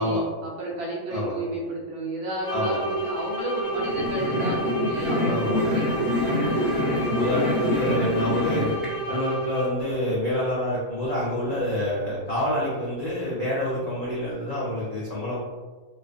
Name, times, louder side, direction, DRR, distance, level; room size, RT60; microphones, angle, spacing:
voice 1, 0.0-7.1 11.3-11.5, right 2 dB, 65° right, -4 dB, 0.7 m, -32 dB
sound 1, 2.4-9.9, right 1 dB, 55° left, 0.7 m, -30 dB
sound 2, 3.7-8.9, left 1 dB, ahead, 0.8 m, -26 dB
voice 2, 5.3-5.6 7.1-8.7 9.1-15.4, left 1 dB, 75° left, -7 dB, 0.3 m, -27 dB
2.4 x 2.3 x 2.4 m, 1.4 s
omnidirectional pair, 1.4 m